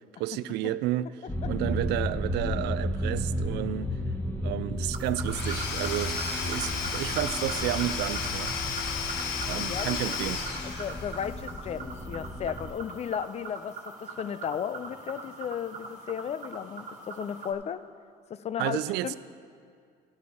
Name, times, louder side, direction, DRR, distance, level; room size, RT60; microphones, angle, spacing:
voice 1, 0.2-1.1 1.5-3.9 4.4-6.2 6.4-8.8 9.4-10.4 18.6-19.2, right 14 dB, 80° right, 16 dB, 0.4 m, -31 dB
sound 1, 1.3-12.7, left 1 dB, 10° left, 1.4 m, -34 dB
sound 2, 4.9-17.5, right 4 dB, 45° right, 1.5 m, -42 dB
Domestic sounds home sounds / Tools, 5.2-11.4, left 6 dB, 80° left, 1.2 m, -33 dB
voice 2, 9.5-10.2 10.6-17.8 18.3-19.2, left 8 dB, 40° left, 15 dB, 0.4 m, -35 dB
14.0 x 8.4 x 4.3 m, 2.2 s
cardioid pair, 110°, 17 cm